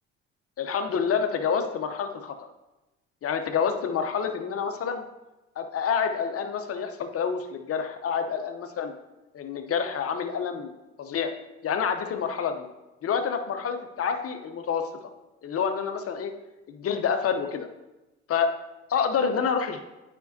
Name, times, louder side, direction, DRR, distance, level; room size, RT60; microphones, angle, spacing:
voice 1, 0.6-2.3 3.2-5.0 5.6-8.9 9.3-10.7 11.0-11.3 11.6-12.6 13.0-14.9 15.4-16.3 16.7-17.7 18.3-18.5 18.9-19.8, left 6 dB, 40° left, 7 dB, 0.8 m, -28 dB
9.1 x 5.3 x 2.7 m, 1.0 s
hypercardioid pair, 55°, 35 cm